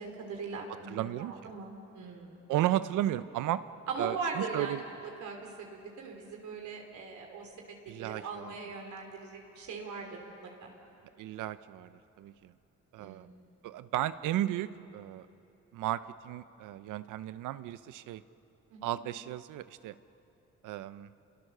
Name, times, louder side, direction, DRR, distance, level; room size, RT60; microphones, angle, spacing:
voice 1, 0.0-2.5 3.9-4.9 5.2-7.5 8.0-10.7 13.0-13.3 18.7-18.9, right 4 dB, 70° right, 1 dB, 3.4 m, -40 dB
voice 2, 0.9-1.5 2.5-3.6 4.0-4.8 7.9-8.6 11.2-12.5 12.9-13.3 13.6-15.3 15.7-18.2 18.8-19.9 20.6-21.1, right 13 dB, 90° right, 14 dB, 0.7 m, -34 dB
28.5 x 23.0 x 6.7 m, 2.9 s
cardioid pair, 90°, 30 cm